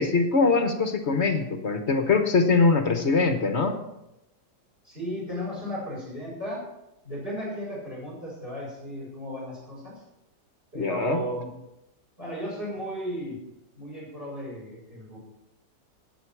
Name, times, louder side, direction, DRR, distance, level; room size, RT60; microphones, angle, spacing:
voice 1, 0.0-3.8 10.7-11.2, left 4 dB, 45° left, 6 dB, 1.4 m, -22 dB
voice 2, 4.8-6.6 7.0-10.0 10.7-11.5 12.2-13.4 13.7-15.2, equal, 35° right, -3 dB, 6.5 m, -35 dB
18.5 x 8.3 x 4.8 m, 0.88 s
omnidirectional pair, 1.8 m